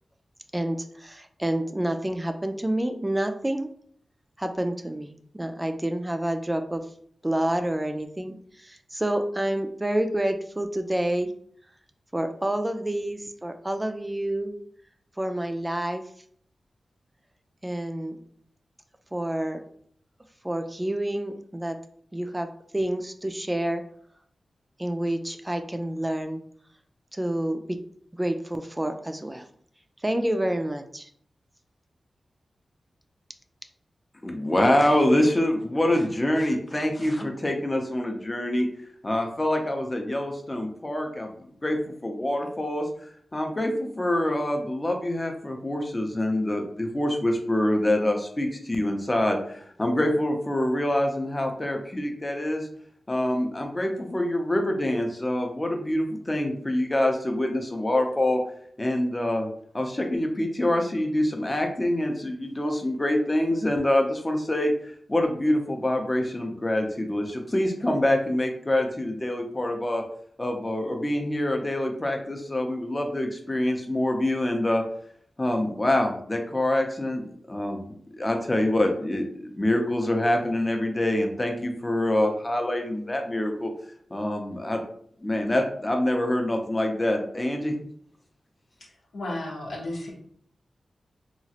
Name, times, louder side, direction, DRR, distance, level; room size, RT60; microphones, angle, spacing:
voice 1, 0.5-3.7 4.4-6.8 7.2-11.3 12.1-14.5 15.2-16.0 17.6-18.2 19.1-19.6 20.4-21.8 22.1-22.5 22.7-23.8 24.8-26.4 27.1-27.8 28.1-29.5 30.0-31.1, right 1 dB, 20° right, 7 dB, 0.3 m, -28 dB
voice 2, 34.2-38.7 39.0-41.3 41.6-52.7 53.1-58.4 58.8-70.0 70.4-74.8 75.4-77.8 78.2-83.7 84.1-84.8 85.2-87.7, left 1 dB, 30° left, 3 dB, 0.5 m, -25 dB
voice 3, 89.1-90.1, left 1 dB, 85° left, -3 dB, 0.9 m, -33 dB
2.9 x 2.4 x 2.8 m, 0.62 s
cardioid pair, 50°, 0 cm